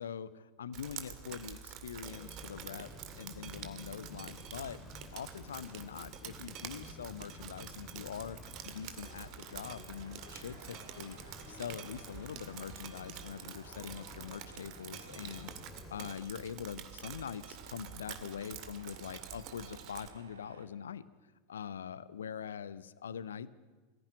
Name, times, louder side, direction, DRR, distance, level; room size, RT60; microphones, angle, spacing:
voice 1, 0.0-2.9 3.2-4.8 5.1-15.5 15.9-21.1 21.5-23.5, left 8 dB, 70° left, 17 dB, 0.9 m, -43 dB
Drip, 0.7-20.1, right 9 dB, 45° right, 2.2 m, -48 dB
sound 1, 2.0-16.1, left 4 dB, 25° left, 2.8 m, -53 dB
Tools, 8.7-20.7, right 5 dB, 75° right, 2.3 m, -58 dB
24.5 x 16.0 x 9.6 m, 1.3 s
figure-of-eight pair, 85°, 0 cm